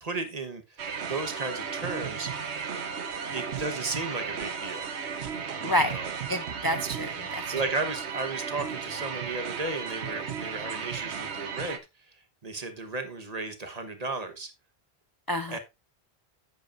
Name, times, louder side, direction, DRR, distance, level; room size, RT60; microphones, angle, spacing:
voice 1, 0.0-2.3 3.3-4.9 5.7-6.1 7.5-11.8 12.4-14.5 15.5-15.6, right 3 dB, 40° right, 8 dB, 1.2 m, -34 dB
sound 1, 0.8-11.8, right 6 dB, 85° right, 1.2 m, -35 dB
sound 2, 1.3-5.4, right 2 dB, 15° right, 2.3 m, -45 dB
voice 2, 5.6-6.0 6.3-7.5 15.3-15.6, equal, 30° left, 9 dB, 0.4 m, -29 dB
10.5 x 8.3 x 2.5 m, 0.25 s
omnidirectional pair, 1.1 m